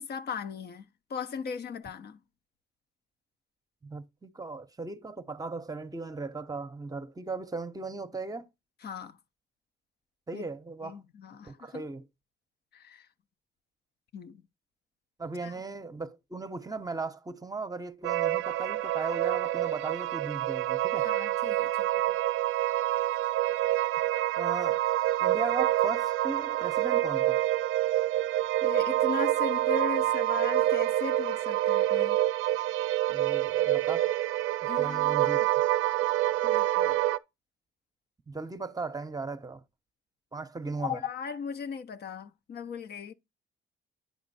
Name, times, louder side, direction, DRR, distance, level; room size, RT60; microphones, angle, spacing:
voice 1, 0.0-2.2 8.8-9.1 10.3-10.4 10.8-11.8 12.7-13.1 14.1-14.4 15.4-15.5 21.0-21.9 28.6-32.2 34.7-35.3 36.0-36.1 36.4-37.0 40.8-43.1, left 6 dB, 55° left, 0.6 m, -38 dB
voice 2, 3.8-8.5 10.3-11.0 11.4-12.1 15.2-21.1 24.4-24.8 25.2-27.4 33.1-34.1 34.8-35.4 38.3-39.6 40.3-41.0, right 3 dB, 20° right, 0.7 m, -37 dB
sound 1, 18.0-37.2, right 14 dB, 85° right, 0.4 m, -27 dB
9.5 x 4.3 x 4.1 m
cardioid pair, 90°, 20 cm